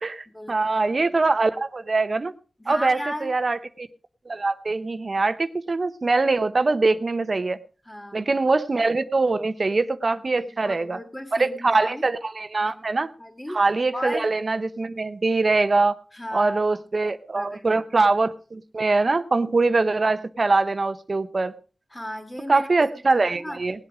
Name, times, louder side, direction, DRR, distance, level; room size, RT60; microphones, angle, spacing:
voice 1, 0.0-2.3 2.7-3.9 4.3-7.6 8.1-11.0 11.3-13.1 13.5-16.0 16.3-21.5 22.5-23.8, right 3 dB, 60° right, 12 dB, 0.8 m, -23 dB
voice 2, 2.6-3.3 7.9-8.3 10.4-12.0 12.6-13.6 13.9-14.3 16.1-16.9 17.3-17.8 21.9-23.6, left 1 dB, 20° left, 4 dB, 2.8 m, -36 dB
19.0 x 8.0 x 4.9 m, 0.37 s
cardioid pair, 50°, 0 cm